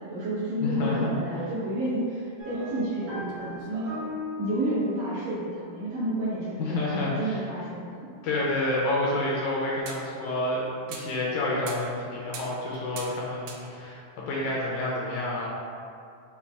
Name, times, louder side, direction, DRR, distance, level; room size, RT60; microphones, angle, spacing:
voice 1, 0.0-3.9 4.4-8.1, right 1 dB, 70° right, -10 dB, 1.7 m, -30 dB
voice 2, 0.6-1.2 6.6-7.4 8.2-10.6 10.9-15.5, left 2 dB, 80° left, -5 dB, 1.9 m, -29 dB
sound 1, 2.4-6.2, left 3 dB, 45° right, 1.1 m, -40 dB
sound 2, 2.5-4.1 8.9-9.0 9.8-10.1 10.7-11.2 11.6-12.0 12.3-14.1, right 4 dB, 90° right, 2.2 m, -43 dB
5.8 x 2.3 x 3.4 m, 2.4 s
omnidirectional pair, 3.8 m